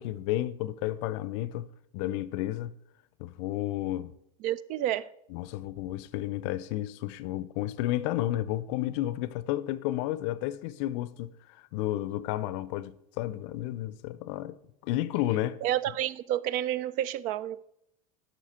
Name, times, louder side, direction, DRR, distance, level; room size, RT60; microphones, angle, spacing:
voice 1, 0.0-1.7 1.9-2.7 3.2-4.1 5.3-14.6 14.8-15.6, left 14 dB, 60° left, 0.5 m, -32 dB
voice 2, 4.4-5.1 15.6-17.7, right 12 dB, 45° right, 0.4 m, -30 dB
8.1 x 6.1 x 4.3 m
hypercardioid pair, 100°, 18 cm